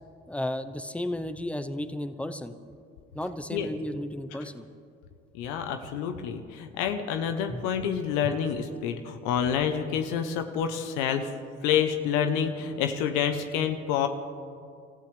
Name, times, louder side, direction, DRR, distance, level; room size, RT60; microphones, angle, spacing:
voice 1, 0.3-2.5 3.1-4.6 7.5-7.6, left 1 dB, 5° left, 9 dB, 0.9 m, -33 dB
voice 2, 5.3-11.3 11.6-14.1, left 8 dB, 85° left, 7 dB, 0.9 m, -28 dB
27.5 x 14.0 x 3.4 m, 2.4 s
supercardioid pair, 65°, 32 cm